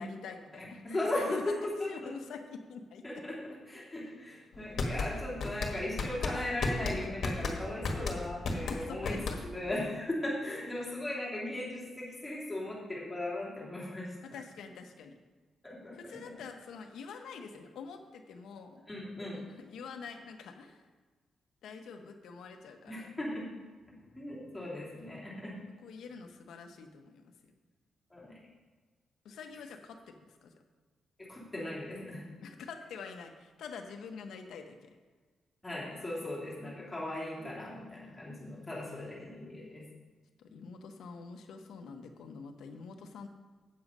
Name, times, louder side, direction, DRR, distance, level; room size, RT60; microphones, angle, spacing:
voice 1, 0.0-1.5 1.9-3.2 5.7-5.9 8.7-9.4 14.2-15.2 15.9-18.8 19.6-20.9 21.6-23.1 25.8-27.3 29.2-30.5 32.4-35.0 38.7-39.2 40.4-43.3, left 5 dB, 90° left, 5 dB, 1.0 m, -46 dB
voice 2, 0.6-2.1 3.0-14.1 15.6-16.0 18.9-19.4 22.9-23.5 24.2-25.6 28.1-28.4 31.3-32.2 35.6-39.8, left 1 dB, 10° left, -6 dB, 3.1 m, -37 dB
sound 1, 4.5-9.7, left 3 dB, 65° left, 1.5 m, -34 dB
8.6 x 7.5 x 5.3 m, 1.4 s
cardioid pair, 125°, 0 cm